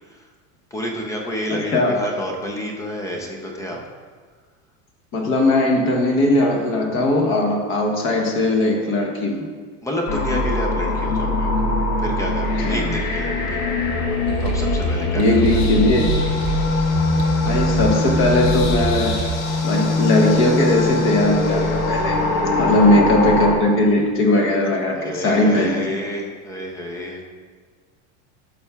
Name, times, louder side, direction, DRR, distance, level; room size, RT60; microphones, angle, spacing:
voice 1, 0.7-3.8 8.8-8.9 9.8-11.5 12.0-13.6 14.4-15.6 22.5-22.9 25.0-27.2, equal, 10° left, 1 dB, 0.4 m, -29 dB
voice 2, 1.5-1.9 5.1-9.4 12.6-12.9 15.2-16.1 17.5-19.2 19.6-22.2 22.6-25.9, left 1 dB, 30° left, 2 dB, 0.9 m, -19 dB
sound 1, 10.1-23.6, left 2 dB, 80° left, 1.3 m, -22 dB
sound 2, 14.3-19.4, right 4 dB, 40° right, 0.8 m, -26 dB
11.5 x 5.6 x 2.3 m, 1.5 s
supercardioid pair, 155°, 40 cm